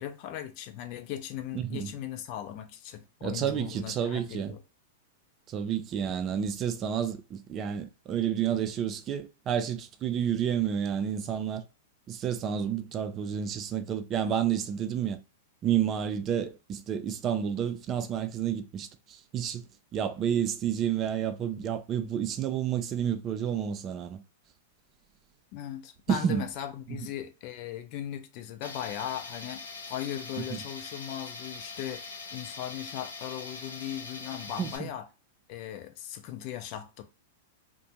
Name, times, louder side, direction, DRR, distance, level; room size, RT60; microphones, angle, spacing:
voice 1, 0.0-4.6 25.5-35.1 35.5-37.0, left 11 dB, 45° left, 0.5 m, -38 dB
voice 2, 1.5-1.9 3.2-4.5 5.5-11.6 12.1-15.2 15.6-19.7 19.9-24.2 26.1-26.4 26.9-27.1 30.5-30.6 34.6-34.9, right 9 dB, 35° right, 0.4 m, -30 dB
Tools, 28.6-34.8, left 4 dB, 90° left, 0.8 m, -42 dB
2.5 x 2.2 x 2.9 m
hypercardioid pair, 105°, 0 cm